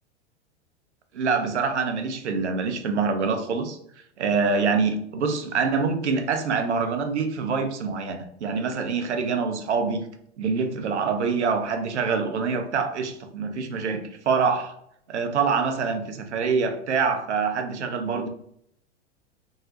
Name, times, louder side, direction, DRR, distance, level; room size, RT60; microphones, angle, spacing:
voice 1, 1.1-3.8 4.2-10.0 10.4-14.7 15.1-18.3, right 5 dB, 75° right, 6 dB, 0.6 m, -25 dB
3.6 x 2.0 x 2.8 m, 0.69 s
figure-of-eight pair, 95°, 35 cm